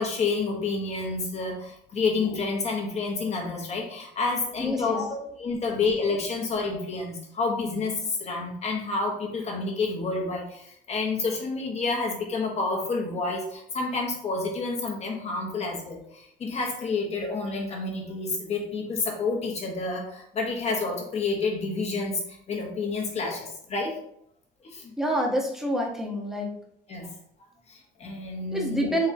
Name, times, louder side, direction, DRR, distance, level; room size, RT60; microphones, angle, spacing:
voice 1, 0.0-24.0 24.6-24.9 26.9-27.1 27.7-28.9, left 3 dB, 40° left, 0 dB, 1.2 m, -29 dB
voice 2, 4.6-5.0 5.5-5.6 25.0-26.6 28.5-29.1, equal, ahead, -1 dB, 1.0 m, -27 dB
3.9 x 3.5 x 2.8 m, 0.71 s
cardioid pair, 110°, 17 cm